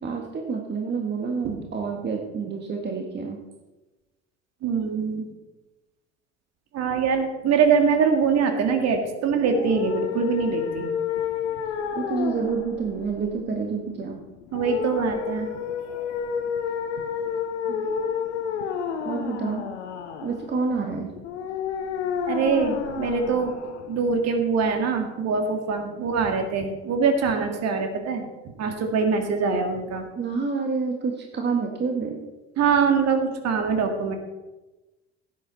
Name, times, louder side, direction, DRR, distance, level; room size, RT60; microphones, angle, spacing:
voice 1, 0.0-3.4 4.9-5.0 11.9-14.2 17.7-17.9 19.0-19.7 20.2-21.1 30.2-32.2, right 5 dB, 30° right, 2 dB, 1.8 m, -28 dB
voice 2, 4.6-5.3 6.7-10.9 14.5-15.5 22.3-23.5 23.9-30.1 32.6-34.2, right 5 dB, 45° right, 5 dB, 2.2 m, -23 dB
sound 1, 9.4-24.4, left 7 dB, 65° left, 1.3 m, -31 dB
16.5 x 9.5 x 4.1 m, 1.1 s
figure-of-eight pair, 60°, 37 cm